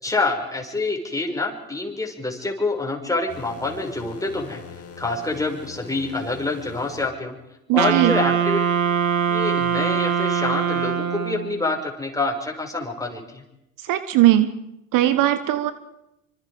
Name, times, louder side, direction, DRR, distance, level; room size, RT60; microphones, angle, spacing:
voice 1, 0.0-4.6 5.0-7.4 7.7-8.6 9.3-13.4, left 3 dB, 10° left, 2 dB, 5.4 m, -26 dB
sound 1, 3.3-7.1, left 6 dB, 35° left, 3.5 m, -41 dB
voice 2, 7.7-8.1 13.9-14.5 14.9-15.7, right 14 dB, 50° right, 12 dB, 1.4 m, -18 dB
Wind instrument woodwind instrument, 7.8-11.6, right 7 dB, 80° right, 1.9 m, -22 dB
27.0 x 25.5 x 4.9 m, 0.85 s
hypercardioid pair, 70°, 40 cm